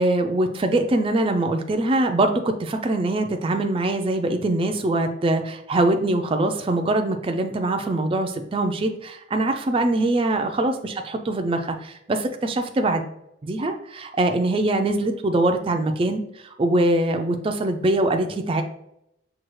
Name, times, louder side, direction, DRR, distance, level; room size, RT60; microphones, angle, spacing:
voice 1, 0.0-13.0 13.4-18.6, right 2 dB, 25° right, 5 dB, 0.3 m, -23 dB
6.0 x 2.4 x 3.1 m, 0.78 s
head